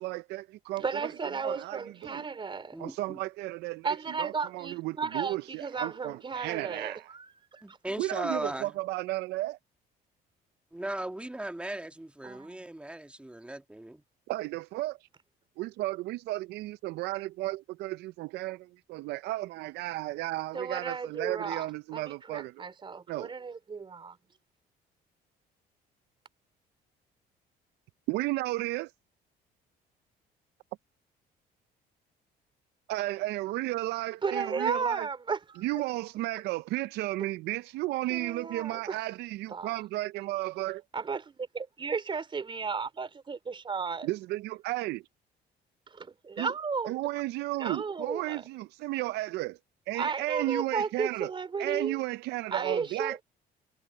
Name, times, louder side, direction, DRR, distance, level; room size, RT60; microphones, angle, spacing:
voice 1, 0.0-1.1 1.4-2.3 2.8-7.1 8.0-9.6 14.3-15.1 15.6-22.6 23.1-23.3 28.1-28.9 32.9-35.1 35.6-40.8 44.0-45.0 46.4-46.5 46.8-49.6 49.9-51.3 51.6-53.2, right 18 dB, 80° right, 0.4 m, -34 dB
voice 2, 0.8-2.8 3.8-7.8 12.2-12.6 20.5-24.2 34.2-35.6 38.1-39.0 39.5-39.7 40.9-44.1 45.9-46.9 47.6-48.4 49.9-52.0 52.5-53.2, right 5 dB, 30° right, 3.5 m, -34 dB
voice 3, 2.7-3.2 7.6-8.7 10.7-14.0, right 1 dB, 5° right, 1.7 m, -37 dB
cardioid pair, 110°, 17 cm